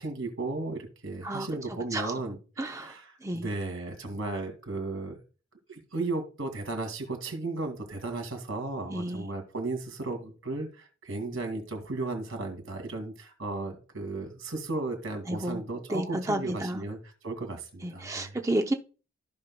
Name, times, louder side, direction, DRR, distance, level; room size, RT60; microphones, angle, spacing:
voice 1, 0.0-3.1 3.3-5.2 5.7-17.0 17.2-18.3, right 2 dB, 80° right, 2.3 m, -35 dB
voice 2, 2.6-3.5 8.9-9.2 15.3-15.6 15.9-16.8 17.8-18.7, right 1 dB, 15° right, 0.6 m, -31 dB
14.5 x 5.6 x 2.2 m
head